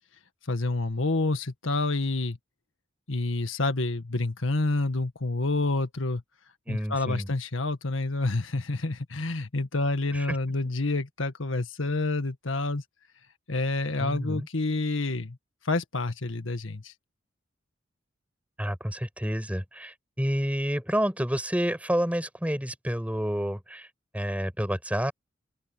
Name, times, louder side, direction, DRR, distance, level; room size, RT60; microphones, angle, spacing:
voice 1, 0.4-2.4 3.1-6.2 6.7-12.8 13.5-15.4 15.6-16.9, left 2 dB, 85° left, 1.7 m, -28 dB
voice 2, 6.7-7.3 10.1-10.4 14.0-14.5 18.6-23.9 24.1-25.1, equal, 5° right, 5.8 m, -29 dB
open air
head